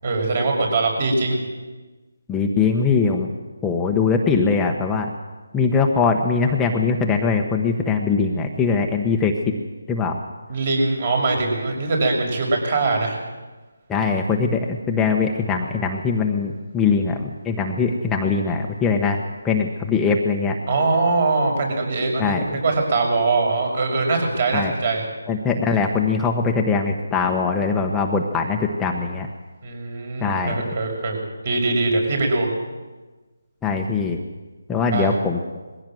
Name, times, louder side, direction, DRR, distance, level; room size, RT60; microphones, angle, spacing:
voice 1, 0.0-1.4 10.5-13.2 20.7-25.1 29.6-32.5 34.9-35.2, right 3 dB, 45° right, 2 dB, 6.2 m, -22 dB
voice 2, 2.3-3.3 3.6-5.1 5.5-9.3 9.9-10.2 13.9-19.2 19.4-20.5 22.2-22.4 24.5-24.7 25.3-29.3 30.2-30.6 33.6-34.2 34.7-35.4, left 5 dB, 5° left, 2 dB, 1.1 m, -21 dB
21.0 x 16.0 x 7.8 m, 1.3 s
figure-of-eight pair, 165°, 0 cm